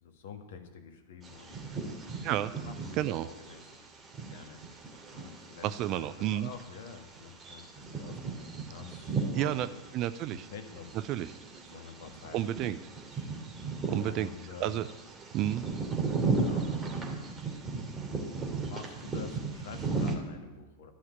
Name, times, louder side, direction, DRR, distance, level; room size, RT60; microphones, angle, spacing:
voice 1, 0.0-2.1 2.6-3.6 4.3-4.6 5.1-5.7 5.9-9.8 10.3-10.9 11.7-12.7 13.1-13.3 13.8-14.8 16.1-17.3 18.4-20.9, left 6 dB, 55° left, 6 dB, 1.6 m, -48 dB
Bird vocalization bird call bird song, 1.2-20.1, right 4 dB, 20° right, 2.7 m, -36 dB
voice 2, 2.2-2.6 3.0-3.3 5.6-6.5 9.3-9.7 9.9-10.5 11.1-11.3 12.3-12.8 13.9-14.3 14.6-14.9 15.3-15.6, right 13 dB, 40° right, 13 dB, 0.5 m, -30 dB
12.0 x 5.8 x 9.2 m, 1.2 s
figure-of-eight pair, 90°, 0 cm